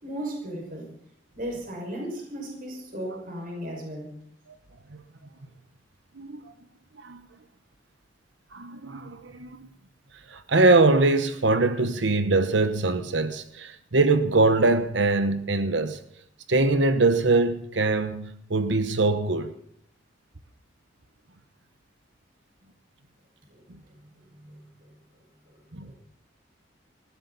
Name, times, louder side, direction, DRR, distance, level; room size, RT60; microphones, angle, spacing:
voice 1, 0.0-0.9 1.3-4.1 23.5-23.6 24.2-24.6 25.5-25.9, right 1 dB, 45° right, 5.9 m, -36 dB
voice 2, 6.1-6.5 7.0-7.3 8.5-9.7 10.3-16.0 16.5-19.5 23.7-23.8 25.7-25.9, right 3 dB, 75° right, 1.1 m, -23 dB
19.5 x 15.5 x 4.1 m
head